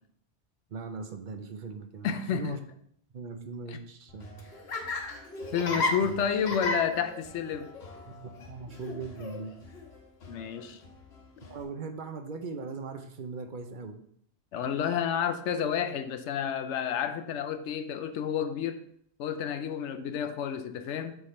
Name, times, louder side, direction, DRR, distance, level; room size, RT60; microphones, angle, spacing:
voice 1, 0.7-2.6 3.1-4.5 5.7-6.5 8.1-9.5 11.5-14.0, right 4 dB, 55° right, 7 dB, 0.7 m, -40 dB
voice 2, 2.0-2.6 5.5-7.7 10.3-10.8 14.5-18.8 19.2-21.2, left 8 dB, 90° left, 9 dB, 0.9 m, -30 dB
Laughter, 4.1-11.6, left 2 dB, 70° left, 1.3 m, -36 dB
7.0 x 3.5 x 4.2 m, 0.68 s
omnidirectional pair, 1.2 m